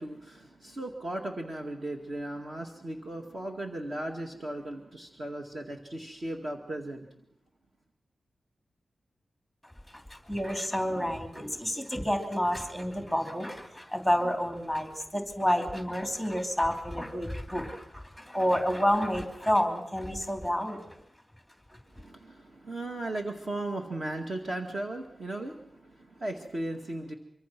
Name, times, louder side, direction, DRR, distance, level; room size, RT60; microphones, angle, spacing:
voice 1, 0.0-7.1 21.9-27.1, right 1 dB, 40° right, 2 dB, 2.0 m, -36 dB
voice 2, 9.6-21.0 21.7-21.8, equal, 5° right, 4 dB, 3.0 m, -29 dB
24.5 x 24.5 x 6.0 m, 0.77 s
wide cardioid pair, 170°, 0 cm